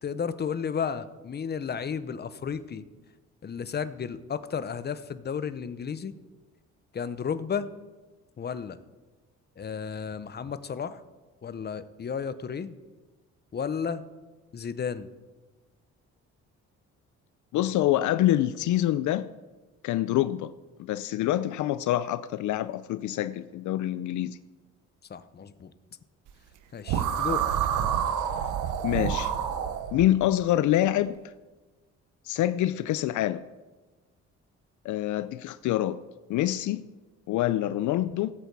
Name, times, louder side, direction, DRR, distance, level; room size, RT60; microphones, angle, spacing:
voice 1, 0.0-2.9 3.4-6.1 6.9-7.7 8.4-8.8 9.6-11.0 11.4-12.7 13.5-14.0 14.5-15.1 25.1-25.7 26.7-27.5, left 6 dB, 35° left, 0.8 m, -33 dB
voice 2, 17.5-19.3 19.8-20.5 20.8-24.4 28.8-29.3 29.9-31.2 32.3-33.4 34.8-36.0 36.3-36.8 37.3-38.3, left 13 dB, 75° left, 0.5 m, -26 dB
sound 1, 26.9-30.1, right 9 dB, 80° right, 1.0 m, -28 dB
16.5 x 8.1 x 4.7 m
cardioid pair, 90°, 30 cm